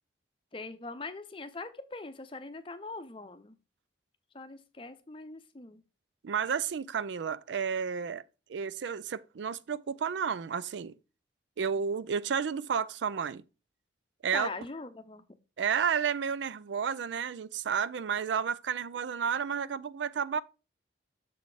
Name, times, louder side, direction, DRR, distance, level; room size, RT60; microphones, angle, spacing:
voice 1, 0.5-3.6 4.3-5.8 14.3-15.3, left 3 dB, 30° left, 0.6 m, -41 dB
voice 2, 6.2-8.2 8.5-11.0 11.6-13.4 14.2-14.5 15.6-20.4, right 7 dB, 80° right, 0.4 m, -31 dB
6.7 x 4.1 x 4.8 m
head